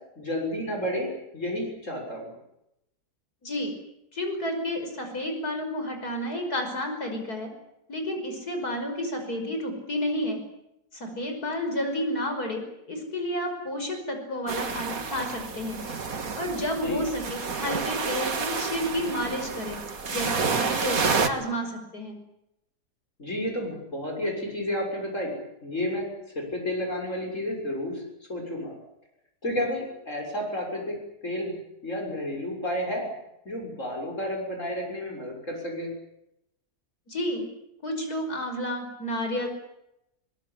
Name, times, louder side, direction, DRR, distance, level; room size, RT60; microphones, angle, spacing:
voice 1, 0.2-2.3 16.7-17.0 23.2-25.4 25.6-26.1 26.4-28.0 28.3-28.7 29.4-31.0 31.2-31.5 31.8-33.1 33.5-35.9, left 1 dB, 50° left, 2 dB, 7.1 m, -31 dB
voice 2, 3.4-3.7 4.1-7.5 7.9-10.4 10.9-15.8 16.3-19.8 20.1-22.2 37.1-37.4 37.8-39.5, left 1 dB, 70° left, 5 dB, 6.1 m, -31 dB
sound 1, 14.5-21.3, right 5 dB, 60° right, 2.2 m, -29 dB
22.5 x 21.5 x 10.0 m, 0.84 s
omnidirectional pair, 1.7 m